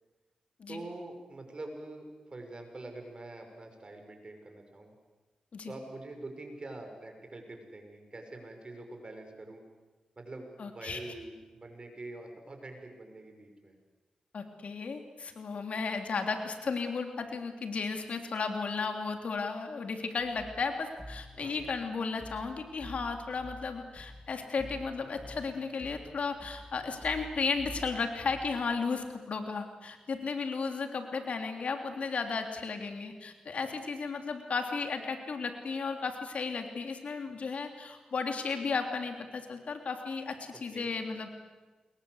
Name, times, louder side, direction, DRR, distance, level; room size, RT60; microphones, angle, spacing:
voice 1, 0.7-4.9 5.7-9.6 10.2-13.8 21.4-21.6 40.7-40.9, right 2 dB, 40° right, 4 dB, 6.3 m, -45 dB
voice 2, 10.6-11.0 14.3-41.3, left 4 dB, 65° left, 5 dB, 3.3 m, -34 dB
sound 1, 20.2-28.7, left 1 dB, 5° left, 3.0 m, -49 dB
28.5 x 22.0 x 8.1 m, 1.3 s
cardioid pair, 60°, 2 cm